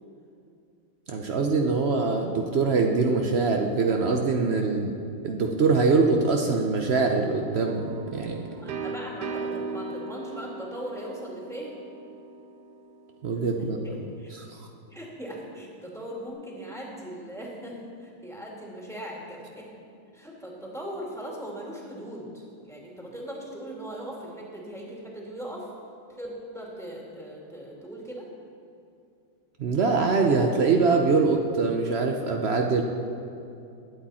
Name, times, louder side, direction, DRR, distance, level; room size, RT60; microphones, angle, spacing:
voice 1, 1.1-4.9 5.2-7.8 8.1-8.4 13.2-13.8 14.4-14.6 29.6-32.8, right 4 dB, 85° right, 2 dB, 0.5 m, -23 dB
sound 1, 7.6-13.3, right 3 dB, 65° right, 1.2 m, -37 dB
voice 2, 8.6-11.7 13.6-14.3 14.9-19.7 20.1-25.7 26.1-28.3, equal, ahead, -4 dB, 2.1 m, -39 dB
21.0 x 8.6 x 4.3 m, 2.6 s
omnidirectional pair, 2.2 m